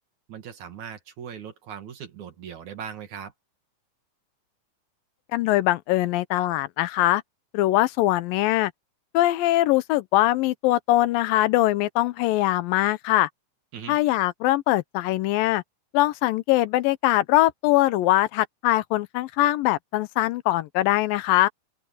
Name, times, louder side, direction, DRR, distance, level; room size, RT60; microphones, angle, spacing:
voice 1, 0.3-3.3 13.7-14.0, right 7 dB, 60° right, 3.3 m, -39 dB
voice 2, 5.3-7.2 7.5-8.7 9.1-13.3 13.9-15.6 15.9-21.5, left 16 dB, 90° left, 2.5 m, -22 dB
open air
omnidirectional pair, 4.0 m